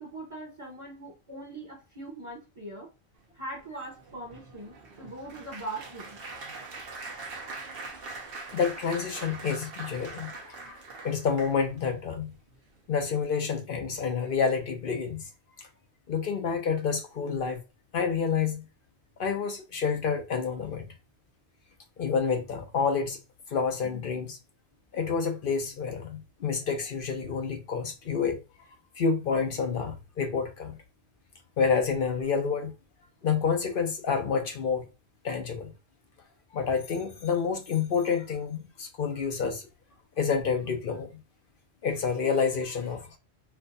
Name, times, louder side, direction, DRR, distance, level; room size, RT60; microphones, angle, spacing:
voice 1, 0.0-2.9 3.3-6.2, right 2 dB, 30° right, 0.9 m, -41 dB
Applause, 3.6-11.9 12.5-12.8 13.0-13.2, right 3 dB, 65° right, 1.0 m, -42 dB
voice 2, 8.5-10.8 11.0-12.3 12.9-15.3 15.6-15.7 16.1-17.6 17.9-18.6 19.2-20.9 22.0-23.2 23.5-24.4 24.9-28.4 29.0-30.8 31.6-32.7 33.2-34.9 35.2-35.7 36.5-39.7 40.2-41.1 41.8-43.2, left 5 dB, 60° left, 0.9 m, -28 dB
4.5 x 2.2 x 2.6 m
omnidirectional pair, 1.1 m